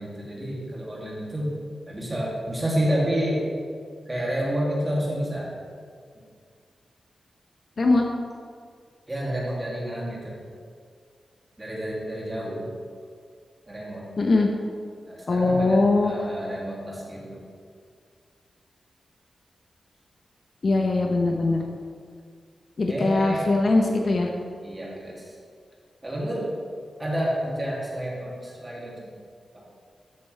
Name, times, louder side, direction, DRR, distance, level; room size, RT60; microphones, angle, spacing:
voice 1, 0.0-1.5 1.9-3.4 4.1-5.5 9.1-10.3 11.6-12.7 13.7-14.1 15.1-17.4 21.3-21.4 22.9-23.5 24.6-25.3 26.0-26.5 27.0-29.1, equal, 15° right, -5 dB, 2.6 m, -29 dB
voice 2, 14.2-14.5 15.3-16.1 20.6-21.6 22.8-24.3, left 2 dB, 45° left, 2 dB, 0.9 m, -21 dB
13.5 x 8.3 x 3.3 m, 2.1 s
wide cardioid pair, 155°, 0 cm